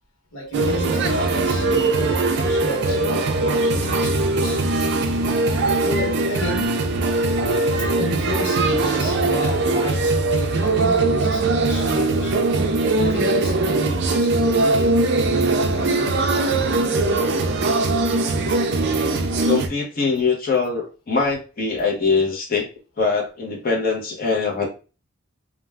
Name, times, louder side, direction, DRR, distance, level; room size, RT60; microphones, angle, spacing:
voice 1, 0.3-4.6 5.8-6.7 8.0-12.4 13.0-17.2, equal, 85° left, -1 dB, 1.2 m, -31 dB
sound 1, 0.5-19.7, right 2 dB, 55° right, 0.4 m, -21 dB
voice 2, 19.4-22.7 23.0-24.7, left 4 dB, 45° left, 0 dB, 0.8 m, -22 dB
2.4 x 2.2 x 3.3 m, 0.33 s
head